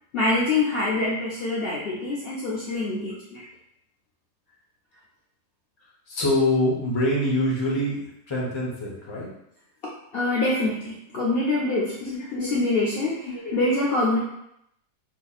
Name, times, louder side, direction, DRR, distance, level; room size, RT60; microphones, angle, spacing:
voice 1, 0.1-3.4 10.1-14.2, left 2 dB, 75° left, -5 dB, 0.5 m, -25 dB
voice 2, 6.1-8.0 8.3-9.3 12.0-12.6 13.3-13.5, left 1 dB, 25° left, -4 dB, 0.6 m, -25 dB
4.0 x 2.7 x 2.4 m, 0.78 s
omnidirectional pair, 1.7 m